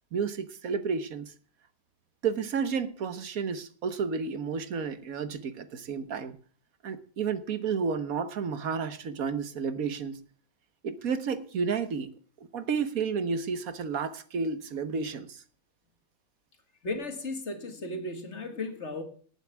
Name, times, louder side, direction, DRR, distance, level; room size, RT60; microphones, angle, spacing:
voice 1, 0.1-1.3 2.2-6.4 6.8-10.3 10.8-12.2 12.5-15.4, right 5 dB, 85° right, 1.6 m, -31 dB
voice 2, 16.8-19.0, left 2 dB, 55° left, 2.2 m, -35 dB
18.5 x 9.1 x 3.5 m
omnidirectional pair, 1.4 m